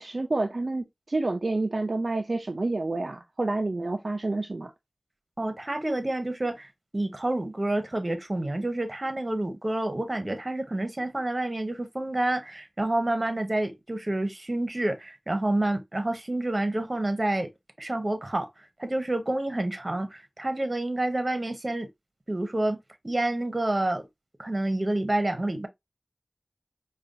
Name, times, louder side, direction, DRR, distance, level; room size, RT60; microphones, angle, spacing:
voice 1, 0.0-4.7, right 2 dB, 65° right, 0.4 m, -29 dB
voice 2, 5.4-17.5 17.8-18.5 18.8-21.9 22.3-22.8 23.0-24.0 24.4-25.7, right 1 dB, 40° right, 0.9 m, -28 dB
4.9 x 2.3 x 2.6 m
wide cardioid pair, 45°, 0 cm